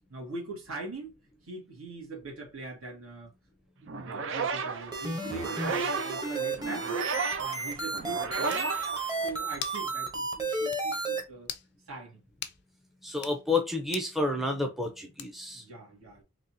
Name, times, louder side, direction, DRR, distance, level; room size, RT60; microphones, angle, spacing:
voice 1, 0.1-1.1 1.4-3.3 3.8-6.9 7.4-8.7 9.2-11.5 11.9-12.2 15.5-16.2, right 3 dB, 75° right, 2.1 m, -41 dB
sound 1, 3.9-9.7, right 5 dB, 55° right, 0.5 m, -34 dB
sound 2, 4.9-11.2, right 3 dB, 20° right, 0.9 m, -32 dB
sound 3, 8.5-8.7 9.6-9.9 10.2-10.3 10.7-10.9 11.4-11.7 12.4-12.6 13.1-13.4 13.9-14.1 15.2-15.5, left 10 dB, 50° left, 0.5 m, -40 dB
voice 2, 13.0-15.6, left 3 dB, ahead, 0.6 m, -30 dB
4.0 x 3.0 x 2.8 m
head